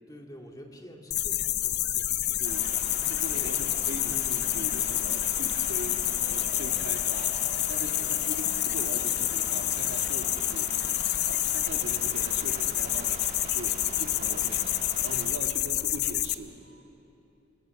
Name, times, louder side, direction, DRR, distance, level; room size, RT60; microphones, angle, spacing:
voice 1, 0.1-2.6 3.3-3.8 8.0-8.2 14.3-14.6, equal, 20° left, 1 dB, 2.2 m, -48 dB
sound 1, 1.1-16.3, left 13 dB, 60° left, 0.7 m, -28 dB
voice 2, 2.2-6.0 6.3-7.4 7.7-10.7 11.2-14.7 15.0-16.8, right 1 dB, 80° right, 3 dB, 1.9 m, -41 dB
sound 2, 2.4-15.3, right 2 dB, 40° right, 2.4 m, -43 dB
Brass instrument, 6.2-8.9 10.5-11.0, left 3 dB, 75° left, 1.5 m, -49 dB
27.5 x 21.5 x 7.1 m, 3.0 s
head